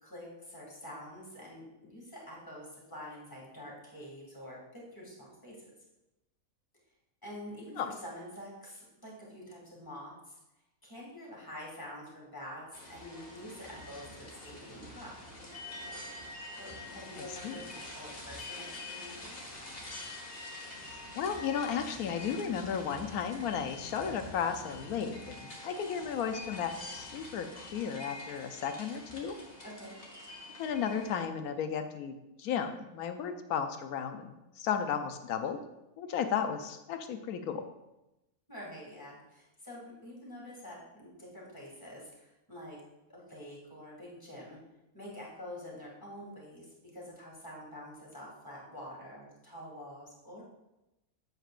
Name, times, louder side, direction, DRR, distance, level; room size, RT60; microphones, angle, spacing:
voice 1, 0.0-5.7 7.2-10.4 10.8-15.1 16.6-19.4 29.6-29.9 38.5-42.8 43.1-44.6 44.9-50.4, equal, 15° left, -5 dB, 2.2 m, -47 dB
sound 1, 12.7-31.2, left 2 dB, 40° left, 1.5 m, -46 dB
voice 2, 17.2-17.6 21.1-29.4 30.6-35.6 36.0-37.6, left 7 dB, 80° left, 7 dB, 1.1 m, -34 dB
8.0 x 7.9 x 2.5 m, 0.95 s
omnidirectional pair, 1.5 m